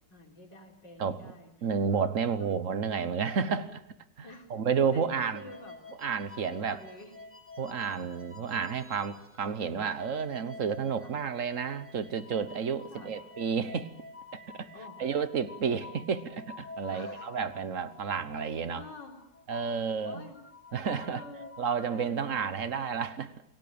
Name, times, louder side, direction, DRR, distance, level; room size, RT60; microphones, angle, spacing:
voice 1, 0.1-1.7 2.4-2.7 4.2-4.5 4.9-5.8 6.4-7.2 7.9-8.1 11.0-11.2 12.9-13.2 14.7-15.0 16.9-17.3 18.8-19.2 20.0-20.4 21.1-21.5 21.8-23.1, left 2 dB, 85° left, 2 dB, 4.5 m, -48 dB
voice 2, 1.6-3.8 4.2-5.4 6.0-6.8 7.6-13.9 14.3-14.7 15.0-18.8 19.5-20.2 20.7-21.2 21.6-23.3, right 6 dB, 50° right, 13 dB, 1.4 m, -31 dB
sound 1, 5.2-9.5 9.8-22.1, left 3 dB, 5° left, 2.0 m, -49 dB
28.5 x 18.5 x 8.7 m, 0.82 s
omnidirectional pair, 1.9 m